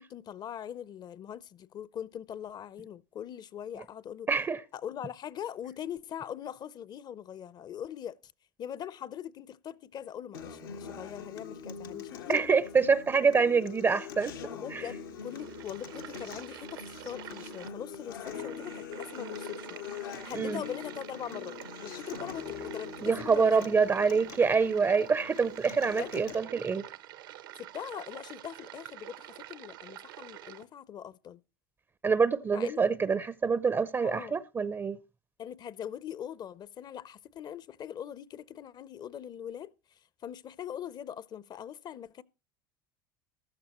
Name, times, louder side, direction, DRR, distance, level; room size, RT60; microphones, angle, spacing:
voice 1, 0.0-4.3 4.7-8.3 8.6-12.5 14.4-19.7 20.2-23.7 25.9-26.4 27.6-31.4 32.5-32.8 34.0-34.4 35.4-42.2, left 9 dB, 40° left, 0.6 m, -41 dB
voice 2, 4.3-4.6 12.3-14.4 14.7-14.9 20.3-20.6 23.0-26.9 32.0-35.0, right 5 dB, 20° right, 0.5 m, -26 dB
Acoustic guitar, 10.3-26.4, left 7 dB, 85° left, 1.3 m, -43 dB
sound 1, 15.0-30.6, right 14 dB, 80° right, 0.9 m, -47 dB
15.0 x 12.0 x 3.0 m
hypercardioid pair, 90°, 11 cm